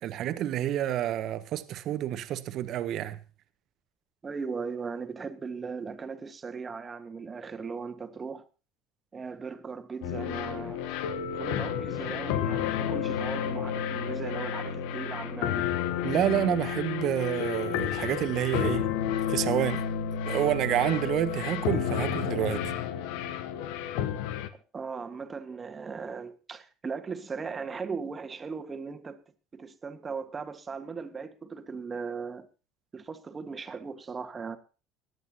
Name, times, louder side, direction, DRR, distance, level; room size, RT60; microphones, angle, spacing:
voice 1, 0.0-3.2 16.0-18.9 19.3-19.9 20.3-22.7, right 12 dB, 50° right, 1.2 m, -29 dB
voice 2, 4.2-8.4 9.1-10.8 11.4-15.7 24.5-29.2 29.5-32.5 32.9-34.6, right 5 dB, 25° right, 1.5 m, -38 dB
sound 1, 10.0-24.5, left 9 dB, 65° left, 1.0 m, -31 dB
22.5 x 10.5 x 2.9 m
figure-of-eight pair, 65°, 0 cm